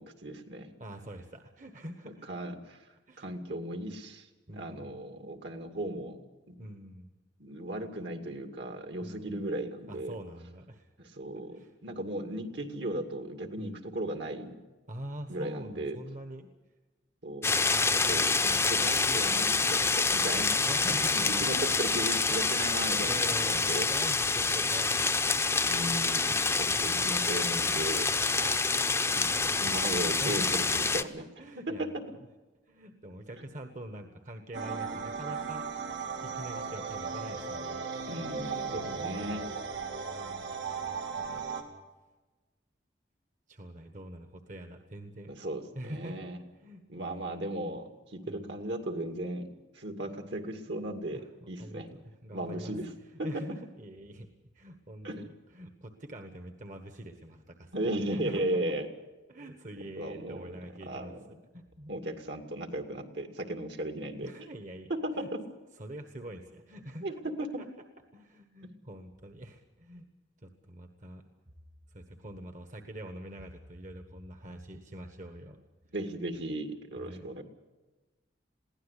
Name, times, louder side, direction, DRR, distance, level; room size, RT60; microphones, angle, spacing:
voice 1, 0.0-0.7 2.3-2.8 3.2-4.3 4.5-6.2 7.4-10.2 11.0-14.6 15.3-16.0 17.2-20.5 21.1-23.9 25.7-28.8 29.1-31.2 31.6-32.0 38.1-39.5 45.3-46.4 46.9-49.5 49.7-51.2 51.5-51.9 52.3-52.9 53.2-53.3 55.0-55.2 57.7-58.9 60.0-60.5 60.8-61.2 61.9-64.3 64.9-65.4 67.0-67.5 75.9-77.4, right 1 dB, 65° right, 5 dB, 2.4 m, -36 dB
voice 2, 0.8-2.3 3.1-3.3 4.5-4.9 6.6-7.1 9.0-9.3 9.9-10.9 11.5-11.7 13.5-13.8 14.9-16.5 17.5-18.6 20.6-22.0 22.9-26.8 30.2-30.9 31.4-32.2 32.7-35.7 36.2-38.0 38.7-39.4 40.8-41.5 43.5-45.3 45.7-46.3 46.5-47.4 48.3-48.6 51.1-52.8 53.1-54.3 54.5-55.3 55.5-58.7 59.3-61.2 61.5-61.9 64.2-64.9 65.1-65.3 65.7-67.2 67.6-67.7 68.1-70.1 70.4-71.2 71.9-75.7 77.0-77.2, right 1 dB, 40° right, 6 dB, 1.3 m, -45 dB
sound 1, 17.4-31.0, left 4 dB, 15° left, 0.7 m, -27 dB
sound 2, 34.5-41.6, right 5 dB, 85° right, 2.8 m, -36 dB
22.0 x 16.5 x 8.3 m, 1.2 s
head